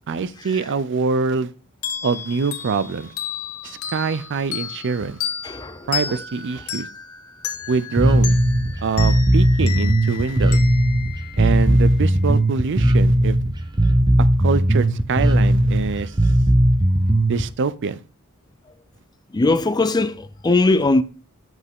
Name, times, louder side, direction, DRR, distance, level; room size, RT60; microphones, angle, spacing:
voice 1, 0.1-1.5 2.0-3.1 3.6-5.2 5.9-6.9 7.7-8.4 8.8-10.6 11.4-13.4 14.4-16.1 17.3-18.0, right 5 dB, 55° right, 0.5 m, -24 dB
sound 1, 1.8-12.1, left 8 dB, 75° left, 1.2 m, -33 dB
voice 2, 5.4-6.2 19.3-21.0, left 2 dB, 20° left, 0.4 m, -20 dB
Bass guitar, 8.0-17.4, right 1 dB, 20° right, 0.7 m, -17 dB
7.7 x 6.2 x 3.6 m
head